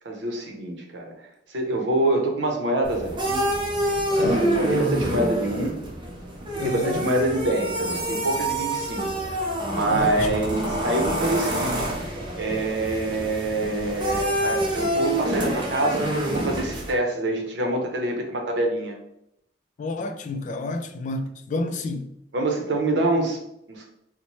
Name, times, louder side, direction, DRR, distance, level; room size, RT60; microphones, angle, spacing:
voice 1, 0.0-1.1 1.5-3.4 4.1-5.8 6.5-9.1 9.4-11.9 12.4-18.9 22.3-23.4 23.7-23.8, right 1 dB, 80° right, 0.7 m, -26 dB
sound 1, 2.8-16.9, right 1 dB, 25° right, 0.6 m, -27 dB
voice 2, 4.2-4.7 6.6-7.1 9.9-10.5 19.8-22.1, left 2 dB, 45° left, 0.3 m, -30 dB
4.0 x 2.1 x 3.0 m
head